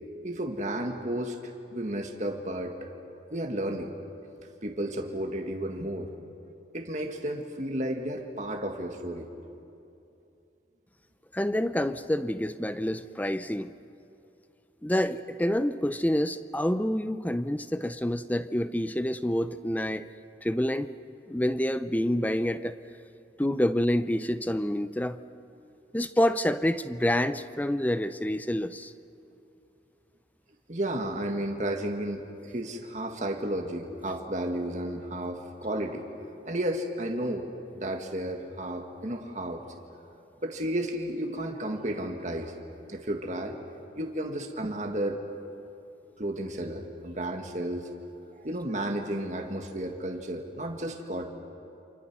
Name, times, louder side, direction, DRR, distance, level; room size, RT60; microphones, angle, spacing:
voice 1, 0.2-2.9 3.3-3.9 4.4-6.1 6.7-9.3 30.7-36.1 36.4-37.5 37.8-39.7 40.4-42.5 42.9-43.5 43.9-45.2 46.2-47.9 48.3-51.3, right 1 dB, 40° right, 3 dB, 1.9 m, -32 dB
voice 2, 11.3-13.7 14.8-20.1 20.4-20.9 21.3-22.8 23.4-25.2 25.9-28.9, left 1 dB, 10° left, 12 dB, 0.6 m, -27 dB
29.0 x 27.0 x 6.2 m, 2.7 s
head